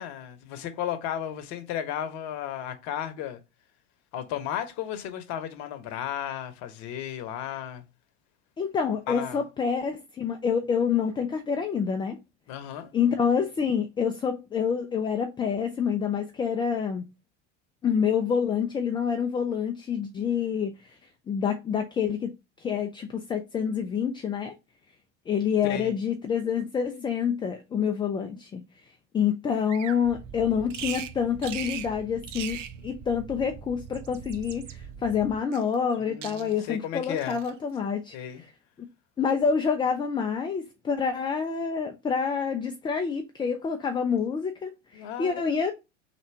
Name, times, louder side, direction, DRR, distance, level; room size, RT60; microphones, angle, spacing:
voice 1, 0.0-3.4 4.1-7.8 9.1-9.4 12.5-12.9 25.6-25.9 36.0-37.4 38.1-38.4 44.9-45.4, left 10 dB, 50° left, 0.9 m, -34 dB
voice 2, 8.6-12.2 12.9-17.0 17.8-20.8 21.3-22.3 22.6-24.5 25.3-28.6 29.1-32.6 32.8-38.1 39.2-45.7, left 6 dB, 15° left, 0.3 m, -27 dB
Bird vocalization bird call bird song, 29.7-30.0 30.7-31.1 31.4-31.9 32.2-32.7 33.8-34.7 35.5-36.0 36.2-36.7 37.2-37.5, right 10 dB, 85° right, 0.5 m, -39 dB
sound 1, 30.0-35.4, right 7 dB, 40° right, 2.3 m, -44 dB
3.3 x 2.8 x 4.4 m
hypercardioid pair, 90°, 36 cm